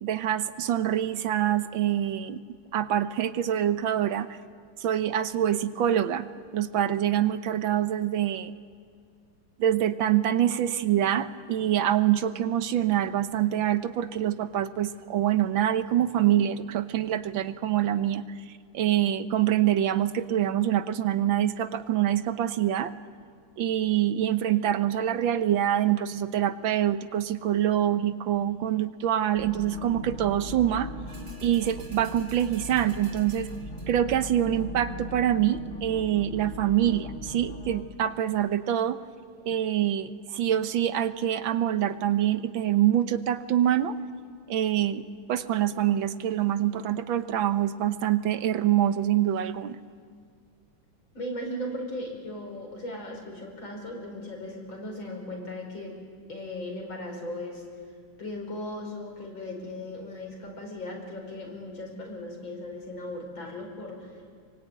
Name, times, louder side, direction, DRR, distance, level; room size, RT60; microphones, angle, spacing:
voice 1, 0.0-2.4 2.7-4.3 4.8-6.3 6.5-8.5 9.6-18.2 18.7-22.9 23.6-30.9 31.4-33.5 33.9-39.0 39.5-44.0 44.5-45.0 45.3-49.8, right 11 dB, 85° right, 11 dB, 1.7 m, -25 dB
sound 1, 29.3-37.8, left 1 dB, 40° left, 2.3 m, -39 dB
sound 2, 31.1-34.1 34.6-34.7, right 3 dB, 35° right, 3.3 m, -52 dB
voice 2, 51.1-55.9 56.3-57.6 58.2-64.1, left 1 dB, 85° left, 1 dB, 6.0 m, -37 dB
25.0 x 23.5 x 9.2 m, 2.1 s
omnidirectional pair, 2.1 m